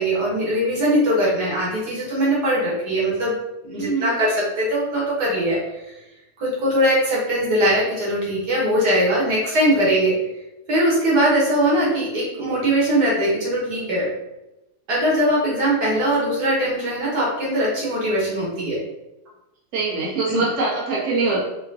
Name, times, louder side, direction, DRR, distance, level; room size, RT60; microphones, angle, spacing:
voice 1, 0.0-3.4 3.6-5.6 6.4-10.2 10.7-14.1 14.9-18.8 20.3-20.4, right 1 dB, 75° right, -5 dB, 1.7 m, -21 dB
voice 2, 3.8-4.2 19.7-21.4, right 3 dB, 55° right, -6 dB, 1.4 m, -23 dB
4.9 x 2.2 x 2.7 m, 0.95 s
omnidirectional pair, 1.7 m